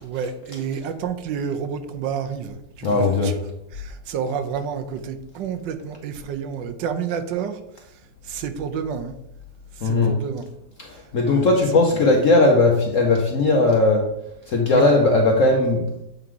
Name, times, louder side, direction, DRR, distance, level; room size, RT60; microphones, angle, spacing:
voice 1, 0.0-9.2 9.7-10.5 11.2-12.1 14.7-15.0, right 7 dB, 80° right, 9 dB, 1.4 m, -30 dB
voice 2, 2.8-3.3 9.8-10.1 10.8-14.1 14.5-15.9, left 2 dB, 55° left, 1 dB, 1.0 m, -18 dB
7.8 x 3.9 x 4.7 m, 0.83 s
omnidirectional pair, 2.0 m